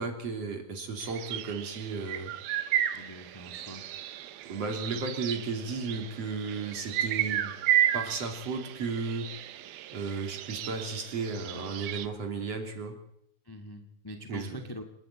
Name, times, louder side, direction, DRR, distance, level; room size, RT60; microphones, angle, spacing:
voice 1, 0.0-2.3 4.5-7.6 7.9-9.3 9.9-13.0 14.3-14.7, right 4 dB, 45° right, 3 dB, 3.8 m, -34 dB
sound 1, 1.0-12.1, right 11 dB, 85° right, 2.9 m, -33 dB
voice 2, 2.9-3.8 13.5-14.8, left 1 dB, 15° left, 4 dB, 0.8 m, -43 dB
27.5 x 11.0 x 8.9 m, 0.75 s
omnidirectional pair, 4.2 m